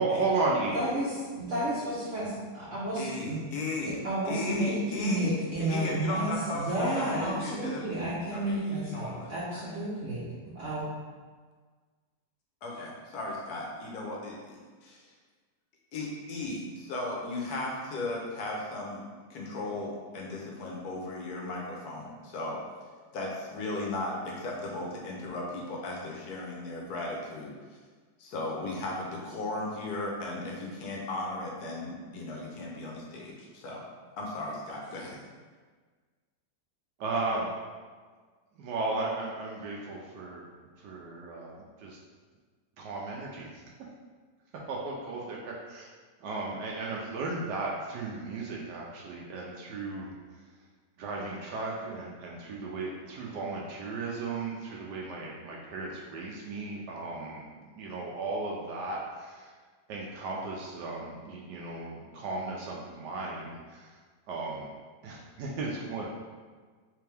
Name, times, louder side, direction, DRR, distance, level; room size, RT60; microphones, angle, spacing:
voice 1, 0.0-0.8 37.0-37.5 38.6-40.4 40.8-42.0 42.8-43.6 44.7-45.9 46.2-50.1 51.0-59.5 59.9-63.9 64.3-64.7 65.0-66.1, right 3 dB, 75° right, -2 dB, 1.2 m, -35 dB
voice 2, 0.7-3.4 3.8-10.8, right 1 dB, 55° right, -9 dB, 1.0 m, -31 dB
voice 3, 2.9-7.9 8.3-9.8 12.6-15.1 15.9-19.0 19.3-22.6 23.1-27.8 28.2-33.8 34.2-35.2, left 2 dB, 65° left, -2 dB, 1.2 m, -36 dB
3.5 x 3.4 x 3.3 m, 1.5 s
omnidirectional pair, 1.9 m